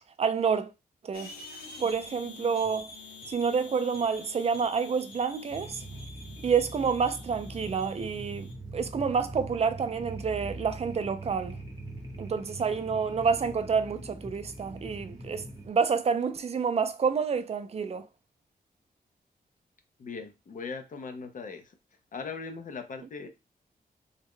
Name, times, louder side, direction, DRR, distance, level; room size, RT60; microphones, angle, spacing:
voice 1, 0.2-0.7 1.0-1.3 1.8-2.9 3.3-5.8 6.4-11.6 12.2-18.1, right 6 dB, 40° right, 0.4 m, -28 dB
sound 1, 1.1-8.5, left 3 dB, 80° left, 0.9 m, -47 dB
sound 2, 5.5-15.7, right 2 dB, 20° right, 0.9 m, -42 dB
voice 2, 20.0-21.7 22.1-23.3, left 5 dB, 60° left, 0.6 m, -39 dB
3.5 x 2.1 x 3.6 m
wide cardioid pair, 160°, 16 cm